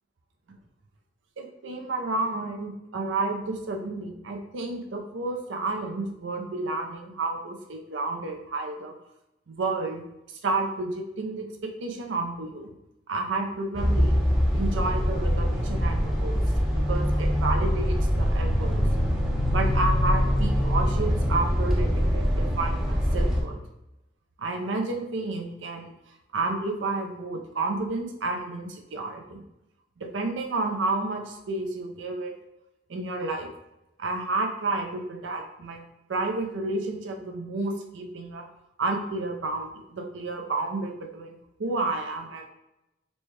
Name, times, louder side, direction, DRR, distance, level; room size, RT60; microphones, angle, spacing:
voice 1, 1.4-8.9 9.5-10.0 10.4-12.7 13.1-14.2 14.5-16.4 16.7-18.8 19.5-23.6 24.4-25.9 26.3-29.4 30.0-32.3 32.9-33.5 34.0-35.8 36.1-38.5 38.8-42.5, right 3 dB, 75° right, 3 dB, 0.5 m, -31 dB
sound 1, 13.7-23.4, equal, 5° right, 0.6 m, -24 dB
4.1 x 2.2 x 3.1 m, 0.92 s
head